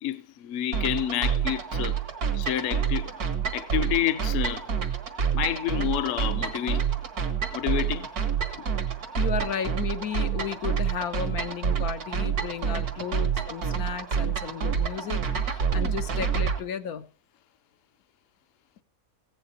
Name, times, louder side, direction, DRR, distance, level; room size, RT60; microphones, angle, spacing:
voice 1, 0.0-2.0 2.3-3.1 3.5-4.7 5.3-6.9 7.5-8.1, left 12 dB, 60° left, 1.0 m, -29 dB
sound 1, 0.7-16.6, right 7 dB, 80° right, 2.0 m, -28 dB
voice 2, 9.1-17.1, left 8 dB, 80° left, 1.4 m, -34 dB
16.0 x 9.7 x 4.3 m
omnidirectional pair, 1.6 m